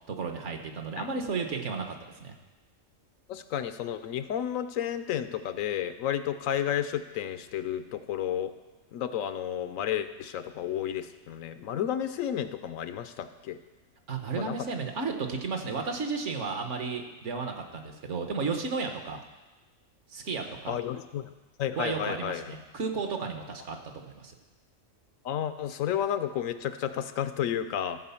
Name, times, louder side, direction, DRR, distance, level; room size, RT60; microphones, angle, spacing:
voice 1, 0.1-2.3 14.1-19.2 20.1-20.7 21.8-24.3, right 4 dB, 65° right, 4 dB, 1.4 m, -33 dB
voice 2, 3.3-8.6 8.9-13.6 14.4-14.6 20.7-21.3 21.6-22.5 25.2-28.0, left 10 dB, 80° left, 11 dB, 1.0 m, -32 dB
14.0 x 4.8 x 7.0 m, 1.1 s
omnidirectional pair, 1.4 m